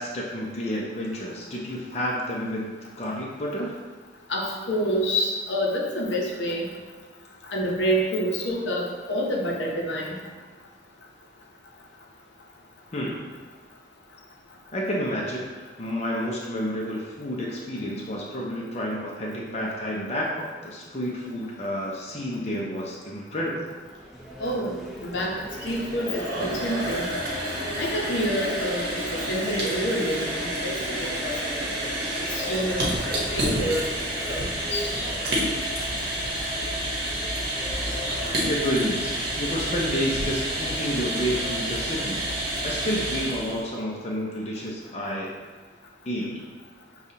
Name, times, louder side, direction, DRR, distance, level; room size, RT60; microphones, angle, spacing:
voice 1, 0.0-2.7 3.0-3.8 12.9-13.3 14.7-15.5 15.8-23.7 38.5-42.2 42.6-45.3 46.1-46.4, equal, 35° left, -3 dB, 0.6 m, -30 dB
voice 2, 4.3-6.7 7.5-10.1 24.4-24.7 25.0-27.0 27.8-31.7 32.3-34.9, equal, 85° left, -2 dB, 0.8 m, -28 dB
sound 1, 23.3-43.1, equal, ahead, 0.8 m, -41 dB
sound 2, 25.5-43.7, right 1 dB, 60° right, 1.0 m, -29 dB
6.5 x 2.4 x 2.8 m, 1.4 s
head